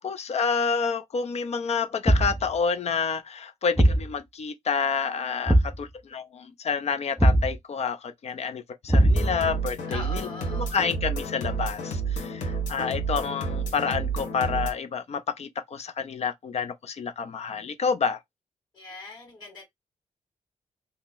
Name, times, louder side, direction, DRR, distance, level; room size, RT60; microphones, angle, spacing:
voice 1, 0.0-10.2 10.6-18.2, left 5 dB, 55° left, 0.5 m, -29 dB
Thump thud, 2.1-2.5 3.8-4.1 5.5-5.8 7.2-7.6 8.9-9.5, right 1 dB, 5° right, 0.5 m, -20 dB
sound 1, 9.0-14.7, right 4 dB, 85° left, 1.2 m, -30 dB
voice 2, 9.9-10.8 18.7-19.6, left 2 dB, 30° left, 1.7 m, -41 dB
2.8 x 2.0 x 3.7 m
cardioid pair, 80°, 13 cm